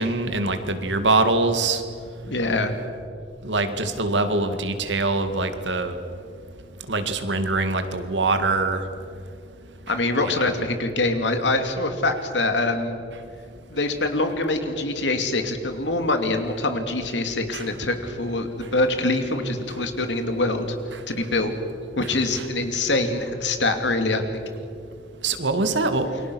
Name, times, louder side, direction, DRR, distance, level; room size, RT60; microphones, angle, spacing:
voice 1, 0.0-1.8 3.4-5.9 6.9-8.8 10.2-10.5 17.5-17.6 22.3-22.5 25.2-26.1, right 3 dB, 85° right, 8 dB, 2.2 m, -23 dB
voice 2, 2.2-2.7 9.9-13.0 13.7-20.7 21.1-21.5 22.0-24.2, left 2 dB, 85° left, 6 dB, 2.6 m, -24 dB
28.5 x 23.0 x 6.3 m, 2.5 s
head